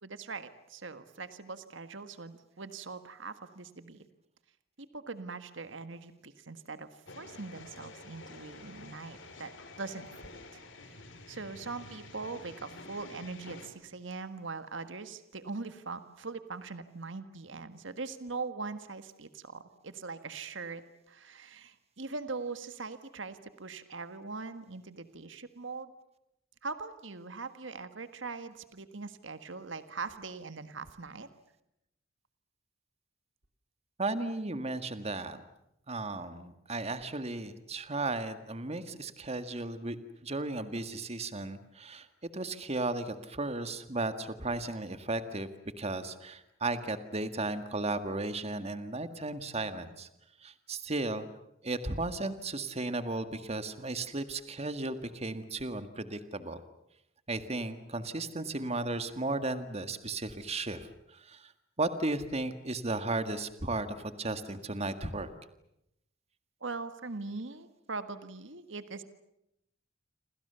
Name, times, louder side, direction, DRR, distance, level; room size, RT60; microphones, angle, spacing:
voice 1, 0.0-4.0 4.8-9.5 9.8-10.6 11.3-20.8 21.1-25.9 26.6-31.3 66.6-69.0, right 4 dB, 70° right, 11 dB, 1.7 m, -41 dB
sound 1, 7.1-13.7, left 3 dB, 70° left, 4.2 m, -49 dB
voice 2, 34.0-35.4 35.9-40.0 40.2-42.1 42.3-45.5 45.8-50.1 50.4-51.3 51.6-56.6 57.3-61.5 61.8-65.3, right 2 dB, 35° right, 10 dB, 1.9 m, -35 dB
28.5 x 26.5 x 7.0 m, 0.83 s
head